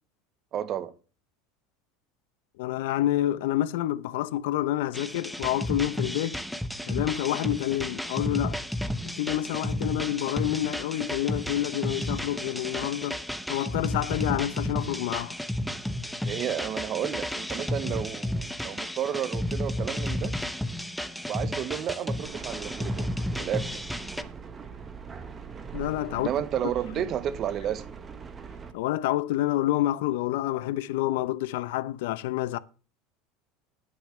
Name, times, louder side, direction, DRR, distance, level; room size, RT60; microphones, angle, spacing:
voice 1, 0.5-0.9 16.2-20.4 21.3-23.1 23.4-23.8 26.1-27.9, right 10 dB, 35° right, 0.8 m, -32 dB
voice 2, 2.6-6.4 6.9-8.6 9.2-13.2 13.5-15.4 25.7-26.3 27.0-27.1 28.7-32.6, left 14 dB, 80° left, 0.6 m, -28 dB
sound 1, 4.9-24.2, left 1 dB, ahead, 0.7 m, -32 dB
sound 2, 22.2-28.7, right 6 dB, 20° right, 1.1 m, -42 dB
19.5 x 6.8 x 3.2 m
supercardioid pair, 145°, 0 cm